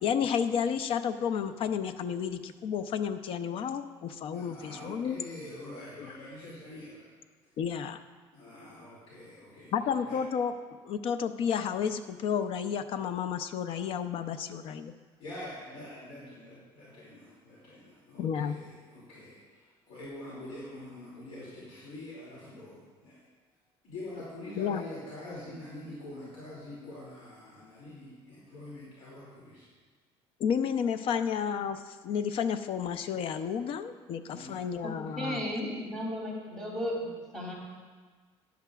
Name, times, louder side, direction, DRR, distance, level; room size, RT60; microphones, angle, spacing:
voice 1, 0.0-5.2 6.0-6.1 7.6-8.0 9.7-10.5 10.8-14.9 18.2-18.5 24.6-24.8 30.4-35.4, left 7 dB, 55° left, 10 dB, 0.5 m, -31 dB
voice 2, 4.3-7.1 8.3-9.7 10.0-10.2 15.2-23.2 23.8-29.7 34.2-34.7, left 1 dB, 80° left, -7 dB, 2.5 m, -45 dB
voice 3, 35.2-37.1 37.3-37.5, equal, 5° left, -5 dB, 2.8 m, -34 dB
12.5 x 10.0 x 2.4 m, 1.5 s
cardioid pair, 150°, 11 cm